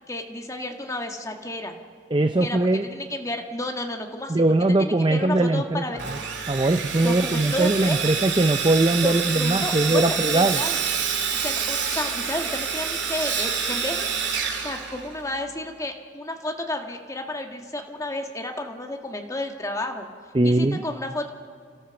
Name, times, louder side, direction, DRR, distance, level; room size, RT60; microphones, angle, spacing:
voice 1, 0.1-1.8 2.4-4.4 4.8-6.0 7.0-8.0 9.0-10.8 11.4-14.1 14.6-20.1 20.4-21.3, left 1 dB, 15° left, 3 dB, 1.5 m, -32 dB
voice 2, 2.1-2.9 4.3-5.8 6.1-6.2 6.5-10.6 20.3-20.8, right 2 dB, 25° right, 8 dB, 0.5 m, -21 dB
Sawing, 6.0-15.5, right 7 dB, 70° right, 2.4 m, -27 dB
29.5 x 13.5 x 7.0 m, 2.1 s
head